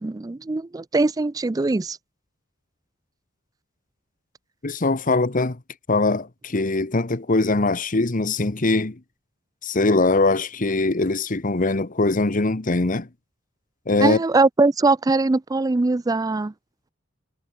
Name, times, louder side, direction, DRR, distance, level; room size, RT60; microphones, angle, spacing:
voice 1, 0.0-2.0 14.0-16.5, right 3 dB, 20° right, 0.4 m, -21 dB
voice 2, 4.6-5.6 5.9-9.0 9.6-13.1 13.9-14.2, left 2 dB, 40° left, 1.1 m, -22 dB
head